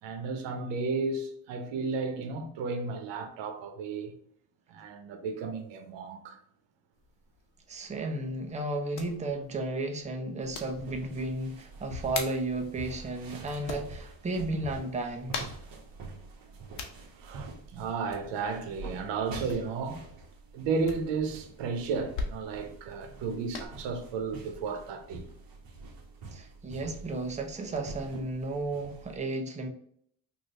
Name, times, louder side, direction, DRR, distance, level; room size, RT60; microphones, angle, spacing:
voice 1, 0.0-4.1 4.7-6.4 17.1-20.0 20.5-25.3, right 4 dB, 85° right, 0.8 m, -33 dB
sound 1, 6.9-23.7, left 4 dB, 80° left, 1.0 m, -44 dB
voice 2, 7.7-15.4 26.3-29.7, right 2 dB, 15° right, 0.6 m, -33 dB
sound 2, 10.4-29.2, right 2 dB, 55° right, 1.0 m, -46 dB
3.3 x 2.6 x 3.8 m
cardioid pair, 110°, 42 cm